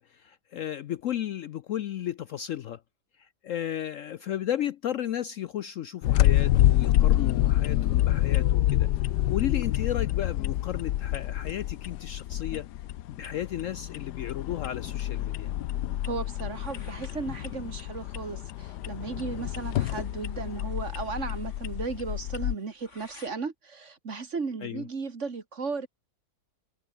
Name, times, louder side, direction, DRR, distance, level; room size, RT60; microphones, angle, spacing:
voice 1, 0.0-2.8 3.2-8.9 9.3-12.7 13.1-15.5 24.6-24.8, left 11 dB, 65° left, 0.8 m, -34 dB
sound 1, 6.0-22.6, left 13 dB, 85° left, 1.3 m, -27 dB
voice 2, 16.0-25.9, right 4 dB, 45° right, 2.2 m, -35 dB
sound 2, 16.5-23.3, left 2 dB, 45° left, 4.8 m, -56 dB
omnidirectional pair, 1.7 m